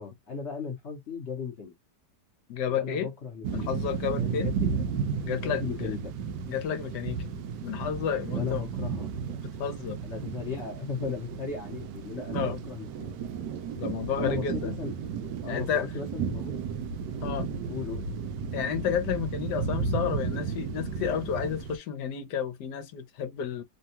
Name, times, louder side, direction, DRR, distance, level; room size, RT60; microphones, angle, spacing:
voice 1, 0.0-1.7 2.7-3.7 4.2-4.8 5.4-6.1 8.3-9.1 10.0-13.1 14.2-14.9 15.4-16.5 17.7-18.1, left 5 dB, 50° left, 1.0 m, -36 dB
voice 2, 2.5-3.1 3.5-4.5 5.2-6.0 6.5-7.3 7.6-8.6 9.6-10.0 12.3-12.6 13.8-14.8 15.5-15.9 17.2-17.5 18.5-23.6, left 8 dB, 80° left, 1.3 m, -31 dB
sound 1, 3.4-21.8, right 6 dB, 85° right, 1.3 m, -33 dB
3.4 x 2.3 x 2.7 m
omnidirectional pair, 1.8 m